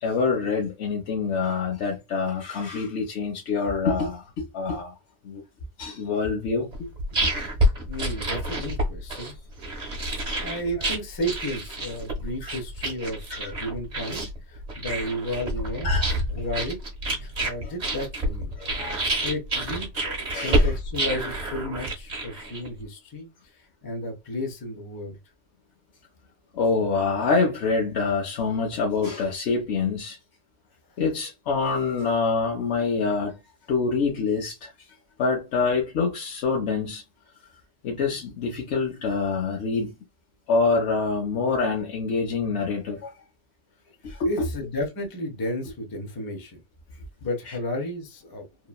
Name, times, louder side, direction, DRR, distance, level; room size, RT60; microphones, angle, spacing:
voice 1, 0.0-4.9 5.2-5.4 5.8-6.9 7.2-7.3 10.3-10.4 12.4-12.5 15.8-16.2 17.6-17.7 18.6-19.1 20.3-20.7 26.5-30.2 31.0-33.4 33.7-34.7 35.2-37.0 37.8-40.0 40.5-43.1 44.0-44.5 47.5-47.6, left 4 dB, 65° left, 0.9 m, -26 dB
sound 1, 6.7-22.8, right 1 dB, 40° right, 0.9 m, -28 dB
voice 2, 7.9-9.3 10.4-16.0 16.3-16.8 17.2-18.5 19.2-23.3 23.5-25.2 43.9-44.0 44.2-46.6 47.2-48.5, left 1 dB, 25° left, 0.5 m, -33 dB
3.0 x 2.2 x 2.3 m
omnidirectional pair, 1.2 m